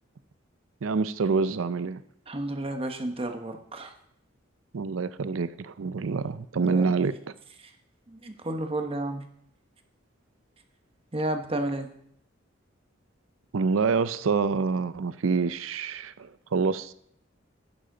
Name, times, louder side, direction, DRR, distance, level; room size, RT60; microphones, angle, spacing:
voice 1, 0.8-2.0 4.7-7.1 13.5-16.9, right 4 dB, 90° right, 0.5 m, -26 dB
voice 2, 2.3-3.9 6.6-6.9 7.6-7.7 8.1-9.2 11.1-11.9, right 1 dB, 30° right, 1.0 m, -32 dB
11.0 x 10.0 x 3.9 m
head